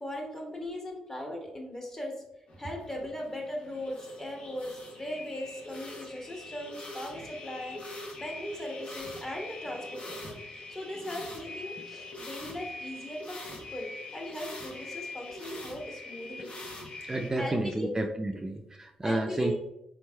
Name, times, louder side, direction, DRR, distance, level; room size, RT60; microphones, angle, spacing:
voice 1, 0.0-2.2 2.6-16.5 17.4-17.9 19.0-19.6, left 1 dB, 20° left, 0 dB, 1.2 m, -39 dB
sound 1, 2.5-17.3, left 2 dB, 55° left, 0.9 m, -43 dB
voice 2, 17.1-19.6, right 1 dB, 25° right, 2 dB, 0.4 m, -31 dB
3.7 x 3.0 x 2.2 m, 0.84 s
supercardioid pair, 50°, 2 cm